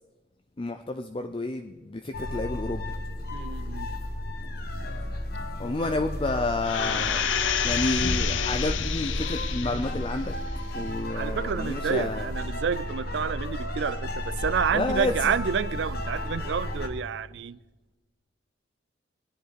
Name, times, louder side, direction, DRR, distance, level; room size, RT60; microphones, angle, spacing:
voice 1, 0.6-2.9 5.6-7.3 7.6-10.3 10.7-12.3 14.7-15.3, left 2 dB, 25° left, 0.5 m, -30 dB
sound 1, 2.1-16.9, left 1 dB, 50° left, 1.2 m, -32 dB
voice 2, 3.3-3.9 11.1-17.6, right 6 dB, 65° right, 0.4 m, -29 dB
sound 2, 6.6-10.0 10.5-10.6, left 8 dB, 80° left, 0.8 m, -29 dB
20.0 x 11.0 x 4.2 m
head